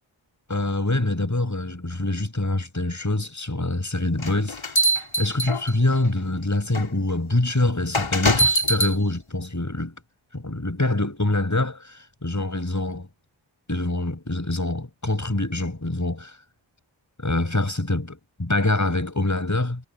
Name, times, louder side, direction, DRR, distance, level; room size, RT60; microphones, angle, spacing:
voice 1, 0.5-4.9 5.2-10.0 10.3-13.0 13.7-16.3 17.2-19.8, left 2 dB, 35° left, 6.6 m, -25 dB
sound 1, 4.2-6.0 6.7-6.9 7.9-8.9, right 1 dB, 80° left, 3.0 m, -22 dB
wide cardioid pair, 40°, 47 cm